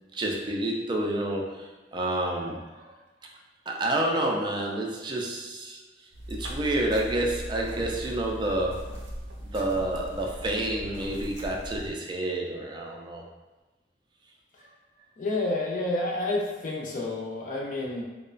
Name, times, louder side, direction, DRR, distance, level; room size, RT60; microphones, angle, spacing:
voice 1, 0.1-2.9 3.7-8.9 9.5-13.2 14.6-14.7, right 1 dB, 25° right, 0 dB, 0.3 m, -29 dB
sound 1, 6.1-11.9, equal, 85° right, 0.5 m, -39 dB
voice 2, 15.2-18.0, left 2 dB, 45° left, -3 dB, 0.5 m, -29 dB
2.9 x 2.1 x 2.4 m, 1.2 s
head